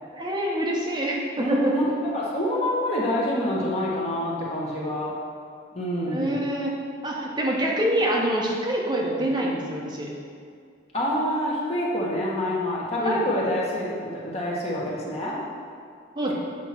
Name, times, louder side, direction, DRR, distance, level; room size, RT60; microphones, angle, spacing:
voice 1, 0.1-1.8 6.1-6.8 7.0-10.1 13.0-13.2 16.2-16.3, right 1 dB, 25° right, -3 dB, 1.0 m, -26 dB
voice 2, 1.4-1.8 2.1-5.1 5.7-6.4 10.9-15.4, equal, 30° left, -5 dB, 1.2 m, -26 dB
7.6 x 3.6 x 5.8 m, 2.3 s
head